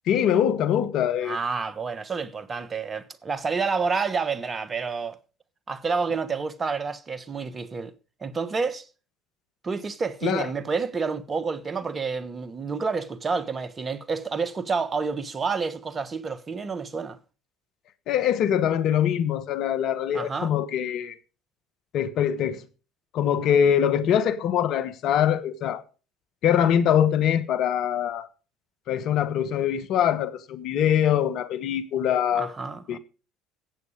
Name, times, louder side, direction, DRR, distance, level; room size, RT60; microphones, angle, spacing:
voice 1, 0.1-1.4 10.2-10.5 18.1-21.1 21.9-22.6 23.1-25.8 26.4-28.3 28.9-32.5 32.9-33.0, left 9 dB, 55° left, 1.2 m, -23 dB
voice 2, 1.2-5.2 5.7-7.9 8.2-8.9 9.6-17.2 20.1-20.5 32.3-33.0, right 5 dB, 30° right, 1.3 m, -29 dB
14.0 x 8.5 x 5.0 m
hypercardioid pair, 65°, 0 cm